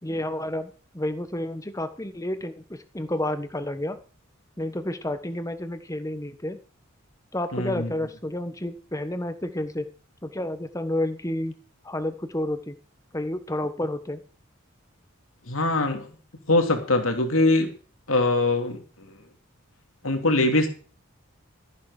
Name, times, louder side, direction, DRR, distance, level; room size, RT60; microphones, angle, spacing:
voice 1, 0.0-4.0 4.6-6.6 7.3-9.9 10.2-11.6 11.8-12.8 13.1-14.2, left 1 dB, 15° left, 10 dB, 1.2 m, -30 dB
voice 2, 7.5-7.9 15.5-16.0 16.5-17.7 18.1-18.8 20.0-20.7, left 2 dB, 75° left, 5 dB, 2.8 m, -22 dB
13.5 x 11.0 x 4.9 m, 0.39 s
head